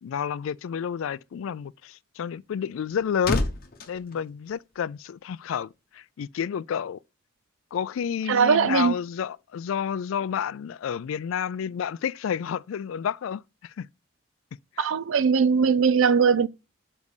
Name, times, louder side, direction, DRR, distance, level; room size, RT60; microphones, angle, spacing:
voice 1, 0.0-3.5 3.9-7.0 7.7-13.9 14.8-14.9, left 8 dB, 70° left, 0.3 m, -30 dB
sound 1, 2.5-5.2 5.5-5.7, left 2 dB, 45° left, 0.9 m, -32 dB
voice 2, 8.3-8.9 14.8-16.5, right 6 dB, 70° right, 0.5 m, -20 dB
5.3 x 5.2 x 4.8 m
head